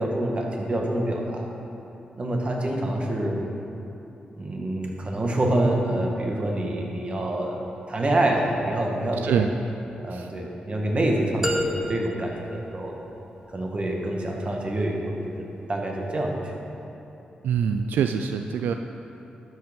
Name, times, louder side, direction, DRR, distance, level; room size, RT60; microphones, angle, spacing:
voice 1, 0.0-1.5 2.2-3.4 4.4-9.4 10.0-12.9 13.5-16.5, right 1 dB, 40° right, 0 dB, 1.8 m, -26 dB
voice 2, 9.2-9.5 10.1-10.3 17.4-18.7, right 7 dB, 85° right, 6 dB, 0.3 m, -24 dB
sound 1, 11.4-13.5, equal, 10° right, 1.2 m, -31 dB
12.0 x 6.3 x 5.3 m, 3.0 s
cardioid pair, 55°, 3 cm